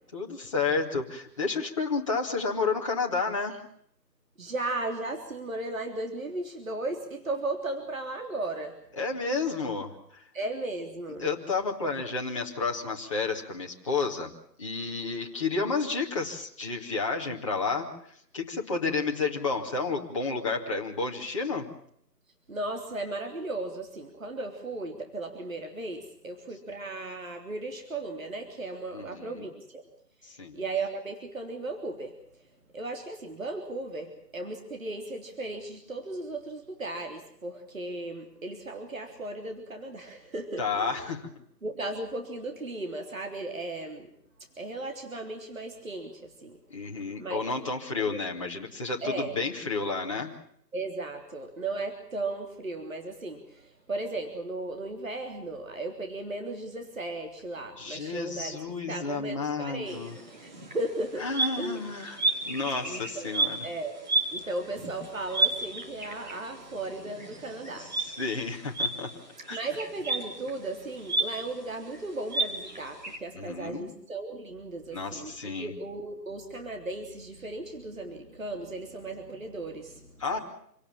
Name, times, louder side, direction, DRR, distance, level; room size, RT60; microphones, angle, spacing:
voice 1, 0.1-3.6 8.9-10.2 11.2-14.3 14.6-21.7 28.9-29.4 30.2-30.6 40.6-41.3 46.7-50.3 57.8-60.2 61.2-63.7 68.0-69.1 69.5-69.6 73.3-73.9 74.9-75.7 80.2-80.4, left 4 dB, 20° left, -1 dB, 2.3 m, -31 dB
voice 2, 4.4-8.8 10.3-11.3 22.5-29.8 30.5-32.1 32.7-41.0 41.6-44.1 44.6-46.6 47.2-47.5 48.1-48.2 49.0-49.4 50.7-58.6 58.9-60.0 60.3-61.3 61.6-61.8 62.8-63.9 64.3-68.2 69.5-80.4, right 2 dB, 50° right, 4 dB, 3.5 m, -36 dB
sound 1, 59.9-73.2, right 2 dB, 25° right, 3.0 m, -33 dB
27.5 x 18.0 x 7.4 m, 0.67 s
figure-of-eight pair, 165°, 50 cm